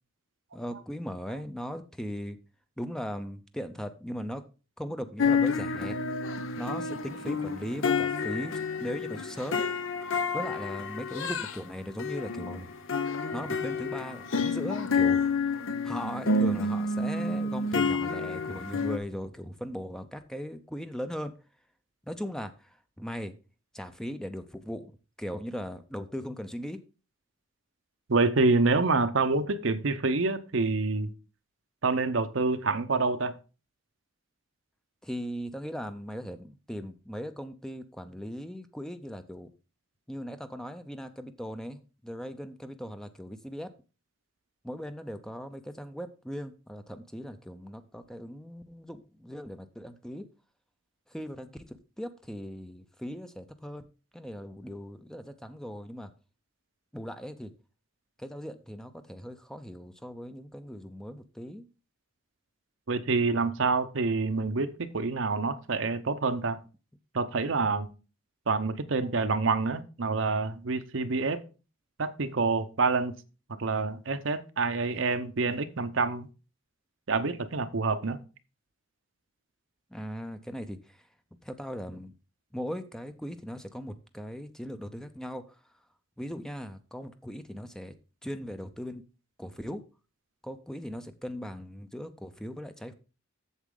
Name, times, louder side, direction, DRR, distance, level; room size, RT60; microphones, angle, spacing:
voice 1, 0.5-2.4 2.8-4.4 4.8-6.0 6.6-9.6 10.3-12.7 13.3-21.3 22.0-23.3 23.7-26.8 35.0-39.5 40.1-43.7 44.6-50.3 51.1-53.9 54.1-56.1 56.9-57.5 58.2-61.7 79.9-81.1 81.4-82.1 82.5-85.6 86.2-87.9 88.2-89.0 89.4-89.8 90.4-92.9, equal, 5° left, 9 dB, 0.5 m, -38 dB
sound 1, 5.2-11.6 12.0-19.0, left 4 dB, 75° left, 0.8 m, -29 dB
voice 2, 28.1-31.1 31.8-33.3 62.9-66.6 67.1-67.9 68.5-71.4 72.0-73.1 73.6-76.3 77.1-78.2, right 3 dB, 65° right, 10 dB, 0.7 m, -27 dB
8.2 x 7.3 x 3.8 m, 0.33 s
head